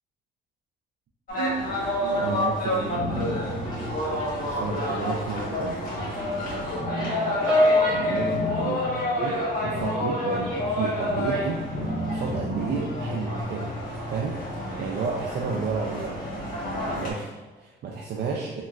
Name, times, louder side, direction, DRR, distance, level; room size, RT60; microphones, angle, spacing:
sound 1, 1.3-17.1, left 1 dB, 45° left, 1.2 m, -29 dB
voice 1, 1.3-3.4 4.4-5.8 8.0-8.8 9.2-11.6 12.1-13.7 14.1-16.2 16.8-18.6, right 5 dB, 55° right, -2 dB, 0.4 m, -32 dB
Piano, 7.5-10.1 10.4-10.7 11.5-11.6, left 2 dB, 10° right, 0.5 m, -26 dB
3.0 x 2.9 x 2.4 m, 1.2 s
cardioid pair, 90°, 20 cm